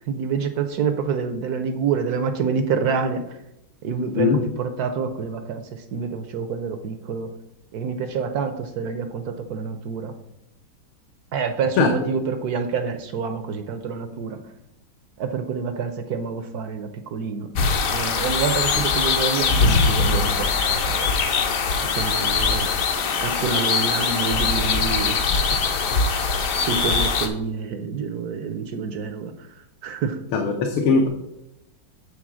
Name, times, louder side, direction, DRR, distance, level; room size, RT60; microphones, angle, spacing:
voice 1, 0.1-3.4 3.8-7.3 7.7-10.1 11.3-14.4 15.2-17.5 17.9-21.1 21.8-22.8 23.2-25.2 25.9-26.0 26.6-29.3 29.8-30.2, right 5 dB, 70° right, 7 dB, 0.9 m, -27 dB
sound 1, 17.5-27.3, left 4 dB, 60° left, 0.9 m, -22 dB
voice 2, 30.3-31.1, left 5 dB, 80° left, 3 dB, 1.7 m, -19 dB
8.6 x 3.8 x 6.2 m, 0.86 s
omnidirectional pair, 2.3 m